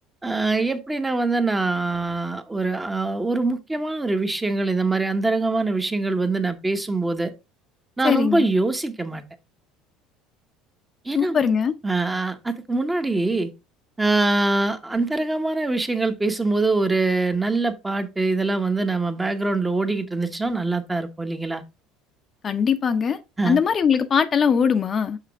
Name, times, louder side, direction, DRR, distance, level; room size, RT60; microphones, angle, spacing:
voice 1, 0.2-7.3 8.0-9.2 11.0-11.5 11.8-13.5 14.0-21.6 23.4-23.6, right 3 dB, 15° right, 1.0 m, -23 dB
voice 2, 8.0-8.5 11.1-11.7 22.4-23.2 23.4-25.2, left 6 dB, 35° left, 0.7 m, -20 dB
5.9 x 5.8 x 3.5 m
supercardioid pair, 95°, 0 cm